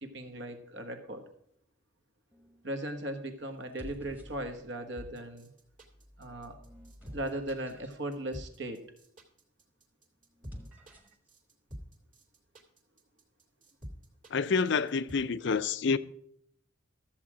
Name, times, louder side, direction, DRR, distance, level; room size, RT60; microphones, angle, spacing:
voice 1, 0.0-1.2 2.6-5.5 6.2-6.6 7.1-8.8, right 1 dB, 60° right, 1.4 m, -38 dB
sound 1, 2.3-2.7 3.5-4.9 5.6-8.0 10.3-11.3, equal, 10° right, 1.2 m, -52 dB
sound 2, 4.9-15.1, equal, 40° right, 2.2 m, -47 dB
voice 2, 14.3-16.0, left 5 dB, 60° left, 0.5 m, -28 dB
13.5 x 7.5 x 4.9 m
head